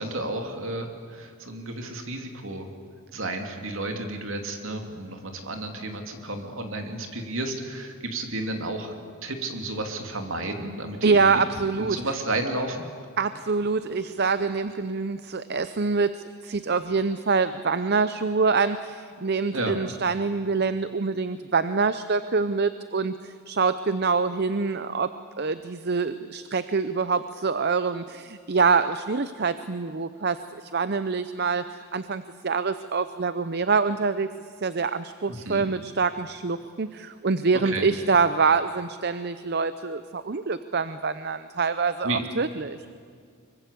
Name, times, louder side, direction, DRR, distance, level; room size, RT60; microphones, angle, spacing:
voice 1, 0.0-2.7 3.1-11.4 11.8-12.8 19.5-19.8 35.3-35.6 37.5-37.9 42.0-42.2, right 2 dB, 65° right, 4 dB, 3.0 m, -32 dB
voice 2, 11.0-12.0 13.2-25.1 25.4-31.6 31.9-34.3 34.6-42.8, right 4 dB, 45° right, 12 dB, 0.6 m, -25 dB
25.0 x 23.5 x 8.4 m, 2.2 s
head